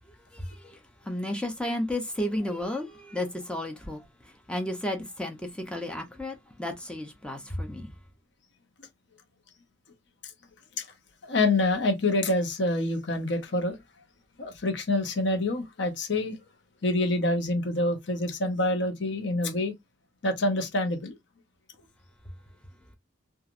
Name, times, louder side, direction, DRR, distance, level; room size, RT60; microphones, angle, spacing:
voice 1, 0.3-7.9, left 1 dB, 5° left, 0.5 m, -33 dB
voice 2, 11.2-13.8 14.4-16.4 16.8-19.7 20.2-21.2, left 2 dB, 60° left, 0.8 m, -26 dB
3.0 x 2.4 x 2.5 m
head